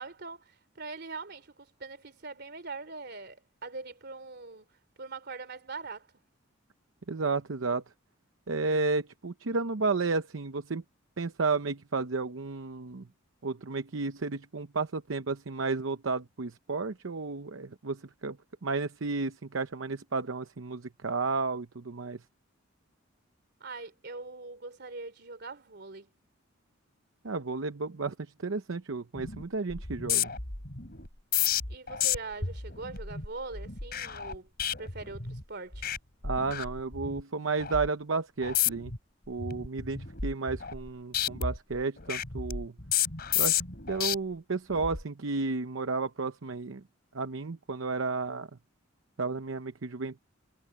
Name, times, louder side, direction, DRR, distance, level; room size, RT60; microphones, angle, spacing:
voice 1, 0.0-4.6 5.0-6.1 23.6-26.1 31.7-34.5 34.8-35.9, right 3 dB, 55° right, 3.4 m, -42 dB
voice 2, 7.1-7.8 8.5-10.8 11.2-13.1 13.4-18.4 18.6-22.2 27.2-30.3 36.2-38.9 39.3-42.7 43.3-43.6 43.9-46.8 47.1-48.5 49.2-50.2, right 4 dB, 75° right, 0.8 m, -32 dB
sound 1, 29.2-29.4 29.7-35.4 35.7-36.0 36.2-37.2 37.6-37.9 38.4-39.0 39.4-40.9 41.1-44.1 44.7-45.0, left 9 dB, 50° left, 3.4 m, -32 dB
head